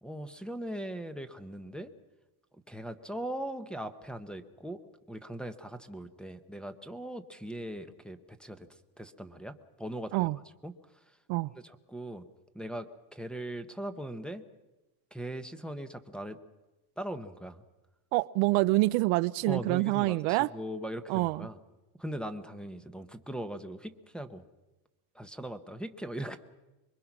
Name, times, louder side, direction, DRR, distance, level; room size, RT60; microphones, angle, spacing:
voice 1, 0.0-1.9 2.7-4.8 5.1-8.7 9.0-10.3 10.6-10.7 11.5-12.2 12.5-14.4 15.1-16.4 17.0-17.6 19.5-21.6 22.0-24.4 25.1-26.4, right 1 dB, ahead, 6 dB, 0.9 m, -40 dB
voice 2, 18.1-20.5 21.1-21.5, right 21 dB, 70° right, 16 dB, 0.7 m, -26 dB
25.0 x 22.5 x 6.0 m, 1.1 s
cardioid pair, 140°, 50 cm